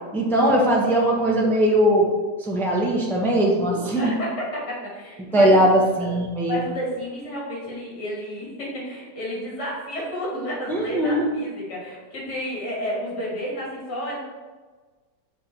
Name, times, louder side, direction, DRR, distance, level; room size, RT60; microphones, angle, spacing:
voice 1, 0.1-2.1 2.4-4.1 5.3-6.6 10.7-11.2, right 1 dB, ahead, -2 dB, 0.7 m, -20 dB
voice 2, 3.9-6.2 6.5-14.2, equal, 65° left, -4 dB, 2.8 m, -31 dB
7.0 x 4.1 x 4.5 m, 1.4 s
omnidirectional pair, 1.9 m